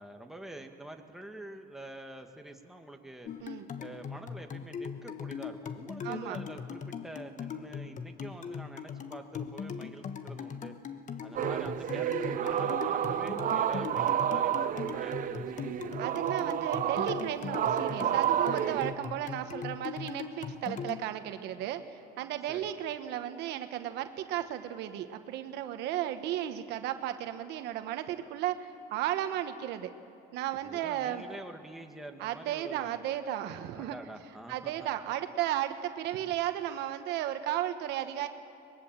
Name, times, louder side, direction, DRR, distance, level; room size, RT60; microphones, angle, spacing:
voice 1, 0.0-3.3 3.8-10.7 11.2-15.9 22.5-22.7 30.6-32.9 33.7-34.7 36.2-36.3, right 1 dB, ahead, 3 dB, 1.8 m, -46 dB
sound 1, 3.3-21.0, left 6 dB, 50° left, 1.3 m, -40 dB
voice 2, 6.0-6.4 16.0-29.9 30.3-31.3 32.2-34.0 34.5-38.3, right 12 dB, 85° right, 8 dB, 1.3 m, -34 dB
sound 2, 11.3-18.9, right 10 dB, 55° right, 0.9 m, -30 dB
23.5 x 21.5 x 7.5 m, 2.5 s
cardioid pair, 110°, 17 cm